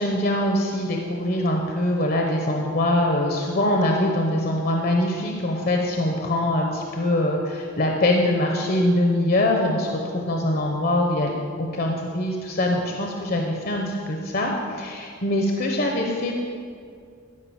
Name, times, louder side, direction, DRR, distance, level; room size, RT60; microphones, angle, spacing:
voice 1, 0.0-11.3 11.6-16.3, left 1 dB, 50° left, 1 dB, 0.9 m, -23 dB
13.0 x 5.4 x 7.1 m, 2.2 s
head